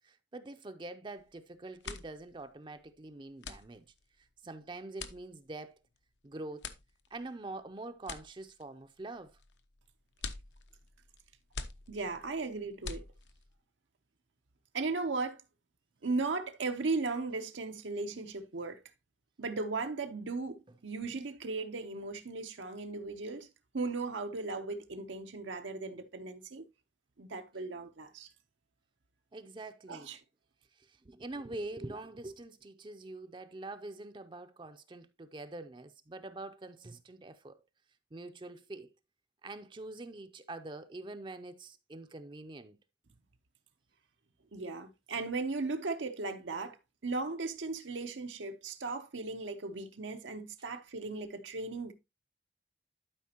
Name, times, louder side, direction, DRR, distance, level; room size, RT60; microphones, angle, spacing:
voice 1, 0.0-3.8 4.2-5.8 6.2-6.7 7.1-9.3 29.3-30.1 30.8-37.6 38.1-38.9 39.4-42.8, right 2 dB, 25° right, 0.5 m, -45 dB
sound 1, 1.1-1.4 1.7-13.6, left 4 dB, 75° left, 0.8 m, -47 dB
voice 2, 11.9-13.0 14.7-15.4 16.0-18.8 19.4-23.5 23.7-26.6 27.2-28.3 29.9-30.2 44.5-51.9, right 3 dB, 90° right, 0.8 m, -37 dB
12.0 x 5.0 x 2.9 m
head